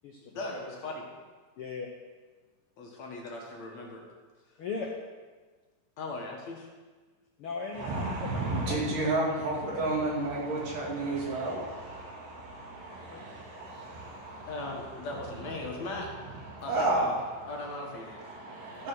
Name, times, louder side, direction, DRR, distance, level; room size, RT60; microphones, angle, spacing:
voice 1, 0.2-1.0 2.8-4.0 6.0-6.7 14.5-16.1 16.6-17.1 17.5-18.2, left 2 dB, 55° left, 0 dB, 2.7 m, -38 dB
voice 2, 1.6-1.9 4.6-4.9 7.4-9.9 13.1-13.3, left 4 dB, 85° left, 0 dB, 1.2 m, -39 dB
voice 3, 7.7-14.7 15.0-15.1 15.6-15.9 16.3-18.9, right 2 dB, 70° right, -4 dB, 4.5 m, -32 dB
14.0 x 7.5 x 6.3 m, 1.4 s
omnidirectional pair, 4.0 m